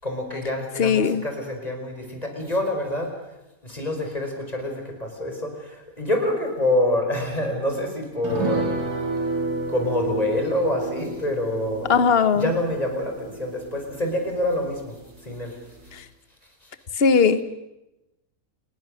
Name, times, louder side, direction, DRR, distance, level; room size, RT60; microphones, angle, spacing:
voice 1, 0.0-3.1 3.6-8.6 9.7-11.9 12.3-15.6 16.6-16.7, left 1 dB, 25° left, 3 dB, 5.2 m, -26 dB
voice 2, 0.8-1.2 11.9-12.5 15.9-16.0 17.0-17.4, left 6 dB, 40° left, 13 dB, 1.3 m, -19 dB
sound 1, 8.2-15.0 15.3-15.4 15.8-15.9, right 2 dB, 70° right, 4.1 m, -31 dB
28.5 x 20.5 x 6.5 m, 0.96 s
omnidirectional pair, 1.7 m